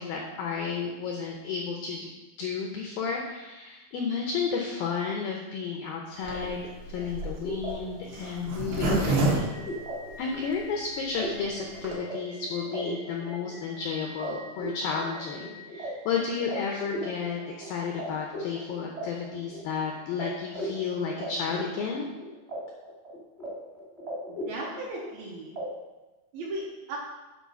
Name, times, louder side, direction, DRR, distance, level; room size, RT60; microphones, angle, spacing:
voice 1, 0.0-2.1 2.4-9.5 10.2-22.1, left 5 dB, 85° left, 0 dB, 2.0 m, -32 dB
Zipper (clothing), 6.2-10.5 11.0-11.1 11.3-11.4 11.6-12.0, right 2 dB, 85° right, 4.0 m, -29 dB
sound 1, 6.9-18.0 18.3-19.8 20.2-20.3 20.5-22.6 22.8-23.5 23.7-25.2 25.5-25.6, equal, ahead, 0.6 m, -38 dB
voice 2, 24.3-25.5 26.3-27.0, right 2 dB, 70° right, -3 dB, 2.4 m, -36 dB
9.9 x 4.1 x 5.7 m, 1.1 s
omnidirectional pair, 5.3 m